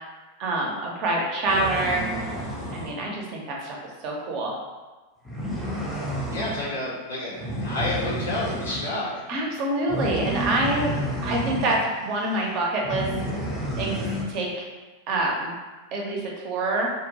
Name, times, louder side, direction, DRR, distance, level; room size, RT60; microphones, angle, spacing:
voice 1, 0.4-2.0 2.7-3.7 4.0-4.6 9.3-13.1 13.8-14.7 15.1-15.5 15.9-16.9, right 2 dB, 40° right, -1 dB, 0.5 m, -26 dB
sound 1, 1.5-3.0 5.2-6.7 7.4-9.0 9.9-11.8 12.2-12.5 12.8-14.3, right 1 dB, 10° left, 0.5 m, -30 dB
voice 2, 6.3-9.2, left 2 dB, 70° left, -7 dB, 0.6 m, -30 dB
2.1 x 2.1 x 2.8 m, 1.3 s
figure-of-eight pair, 90°, 0 cm